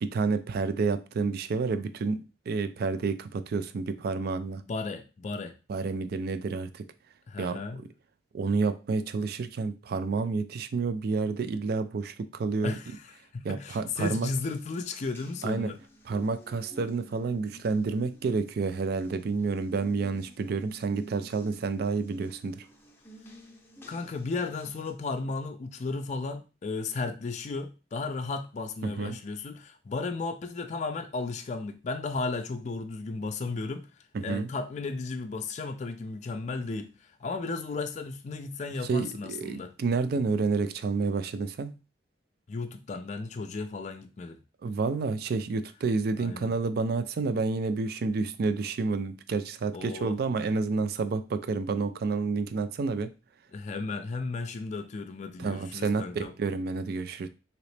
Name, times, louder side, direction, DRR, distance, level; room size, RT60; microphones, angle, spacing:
voice 1, 0.0-4.6 5.7-6.9 7.4-7.6 8.3-12.7 13.4-14.3 15.4-15.7 16.1-22.7 28.8-29.2 34.1-34.5 38.8-41.7 44.6-53.1 55.4-57.3, right 4 dB, 60° right, 0.4 m, -29 dB
voice 2, 4.7-5.6 7.3-7.8 12.6-15.8 23.9-33.9 34.2-39.7 42.5-44.4 46.2-46.5 49.7-50.2 53.5-56.3, left 3 dB, 40° left, 0.4 m, -34 dB
Water tap faucet, 13.9-24.9, right 1 dB, 15° left, 0.7 m, -52 dB
3.9 x 2.9 x 3.2 m
head